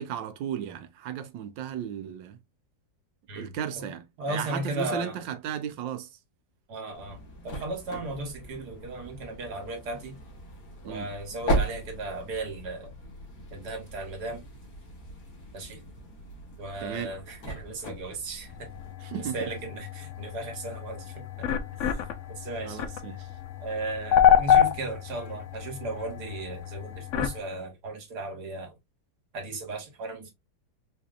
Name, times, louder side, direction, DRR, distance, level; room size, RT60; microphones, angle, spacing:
voice 1, 0.0-2.4 3.4-6.1 10.8-11.1 16.8-17.1 19.0-19.5 22.6-23.3, right 9 dB, 85° right, 1.4 m, -35 dB
voice 2, 3.3-3.8 4.2-5.2 6.7-10.2 10.8-12.9 13.5-14.4 15.5-15.8 16.6-18.7 19.3-21.5 21.9-22.0 22.3-22.8 23.6-28.7 29.3-30.3, right 2 dB, 65° right, 1.8 m, -36 dB
sound 1, 6.9-18.9, right 1 dB, 65° left, 2.0 m, -37 dB
sound 2, 18.5-27.4, left 9 dB, 80° left, 0.6 m, -27 dB
5.0 x 2.8 x 2.4 m
omnidirectional pair, 1.9 m